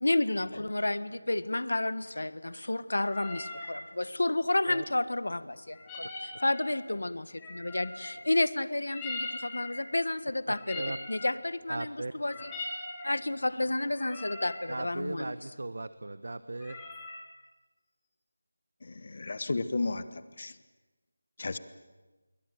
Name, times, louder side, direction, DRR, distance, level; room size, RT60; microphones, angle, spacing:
voice 1, 0.0-12.5 13.0-15.5, left 2 dB, 85° left, 14 dB, 1.4 m, -31 dB
sound 1, 3.0-3.7 5.7-6.8 7.4-8.3 8.9-9.8 10.5-11.4 12.1-13.1 13.9-14.6 16.6-17.2, left 2 dB, 10° left, 3.7 m, -41 dB
voice 2, 11.7-12.1 14.7-16.8, right 2 dB, 60° right, 13 dB, 1.0 m, -37 dB
voice 3, 18.8-20.5 21.4-21.6, left 3 dB, 40° left, 13 dB, 1.3 m, -33 dB
28.5 x 22.5 x 7.8 m, 1.2 s
figure-of-eight pair, 175°, 0 cm